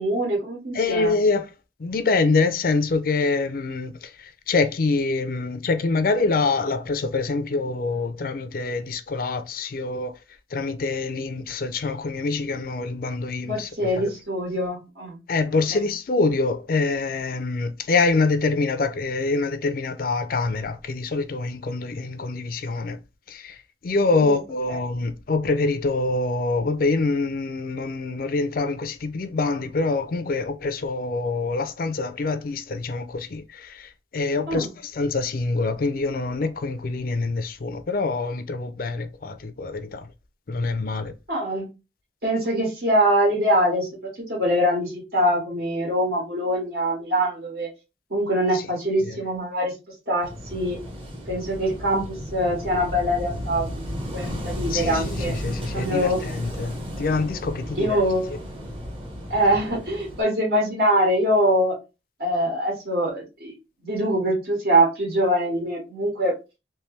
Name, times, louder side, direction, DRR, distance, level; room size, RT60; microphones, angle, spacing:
voice 1, 0.0-1.1 13.4-15.2 15.7-15.8 24.2-24.3 34.5-34.7 41.3-41.7 42.2-43.9 44.3-47.7 48.1-49.7 50.1-50.8 51.3-55.3 55.7-56.2 57.8-58.5 59.3-61.7 62.2-63.5 63.8-66.3, equal, 65° right, 1.6 m, -23 dB
voice 2, 0.7-1.5 1.8-10.2 10.5-13.7 14.0-14.1 15.3-23.0 23.3-40.1 40.5-41.1 48.5-48.7 49.0-49.2 54.7-58.0, left 3 dB, 50° left, 0.4 m, -25 dB
Wind / Waves surf, 50.2-60.2, equal, 30° right, 1.0 m, -34 dB
3.3 x 3.0 x 3.1 m
head